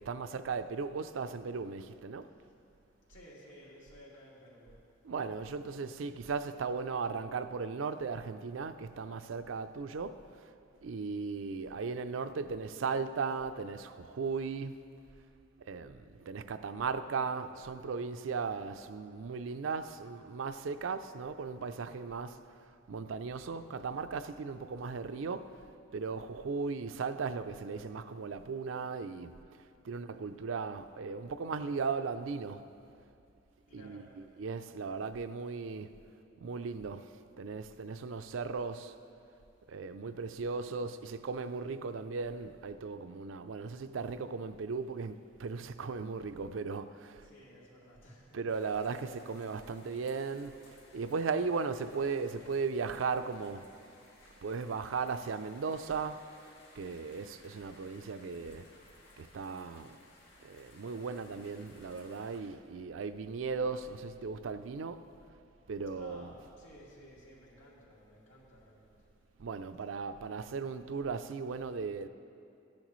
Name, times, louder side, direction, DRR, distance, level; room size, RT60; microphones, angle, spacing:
voice 1, 0.0-2.3 5.0-10.5 10.8-14.7 15.7-22.6 22.9-25.5 25.9-29.4 29.8-32.7 33.7-35.9 36.4-39.0 39.7-47.3 48.3-53.7 54.4-56.2 56.8-58.7 59.2-59.9 60.4-65.1 65.7-66.3 69.4-72.1, right 5 dB, 85° right, 0.5 m, -37 dB
voice 2, 3.1-4.8 33.7-34.1 47.2-48.4 66.0-69.1, equal, 80° left, 2.6 m, -55 dB
sound 1, 48.5-62.4, left 2 dB, 55° left, 2.1 m, -60 dB
15.0 x 10.5 x 3.1 m
head